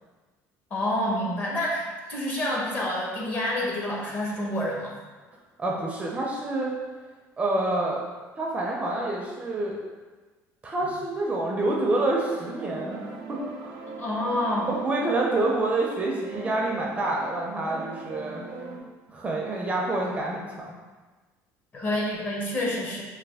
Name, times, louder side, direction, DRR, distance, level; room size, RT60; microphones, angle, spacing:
voice 1, 0.7-4.9 14.0-14.7 21.7-23.0, left 1 dB, 30° left, -3 dB, 0.8 m, -28 dB
voice 2, 5.6-6.7 7.4-8.0 8.4-9.8 10.6-13.8 14.7-18.4 19.1-20.7, right 2 dB, 20° right, -2 dB, 0.5 m, -27 dB
sound 1, 12.0-18.8, right 3 dB, 85° right, 0.6 m, -40 dB
3.3 x 2.2 x 3.4 m, 1.3 s
cardioid pair, 125°, 6 cm